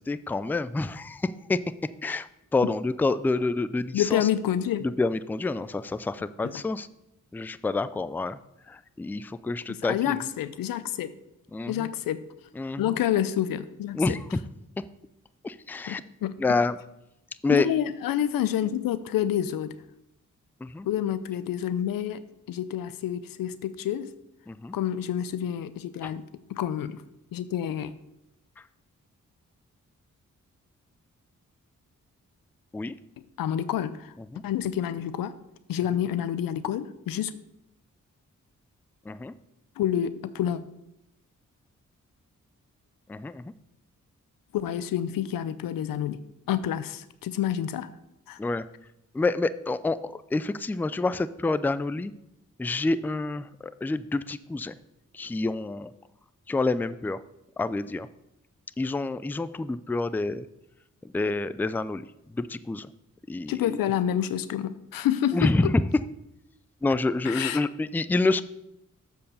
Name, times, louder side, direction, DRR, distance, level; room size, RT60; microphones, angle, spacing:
voice 1, 0.0-1.6 2.0-4.3 4.8-6.9 7.3-8.4 8.7-10.2 11.5-11.9 12.6-13.0 13.9-14.3 15.4-16.0 16.4-16.8 17.4-17.7 20.6-20.9 24.5-24.8 26.0-26.1 32.7-32.9 34.3-34.4 39.1-39.3 43.1-43.5 48.4-48.7 49.1-52.1 52.6-54.7 55.1-55.9 56.5-57.2 57.6-58.1 58.8-60.5 61.0-62.9 63.3-63.8 65.3-65.8 66.8-68.4, left 3 dB, 5° left, 15 dB, 0.3 m, -28 dB
voice 2, 3.9-4.9 6.4-6.5 9.9-11.1 11.7-12.2 12.8-14.2 15.9-16.3 17.5-19.7 20.8-22.2 22.5-24.1 24.7-26.2 26.5-27.0 27.3-27.9 33.4-34.1 34.4-35.3 35.7-37.3 39.8-40.6 44.5-46.2 46.5-47.9 48.3-48.4 63.5-65.5 67.2-67.7, left 10 dB, 85° left, 15 dB, 0.5 m, -28 dB
7.3 x 4.6 x 6.6 m, 0.87 s
supercardioid pair, 45°, 33 cm